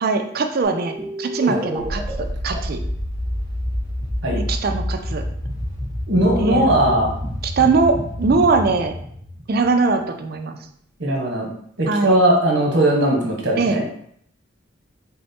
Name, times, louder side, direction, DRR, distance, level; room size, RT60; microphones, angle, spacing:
voice 1, 0.0-2.8 4.5-5.2 6.4-6.7 7.4-8.9 9.5-10.6 11.9-12.2 13.6-13.8, right 4 dB, 50° right, 6 dB, 0.4 m, -21 dB
sound 1, 0.6-10.0, equal, 20° right, 1.1 m, -28 dB
voice 2, 6.1-7.1 11.0-11.5 11.8-13.8, right 1 dB, 70° right, -1 dB, 1.1 m, -18 dB
4.3 x 2.1 x 4.2 m, 0.65 s
head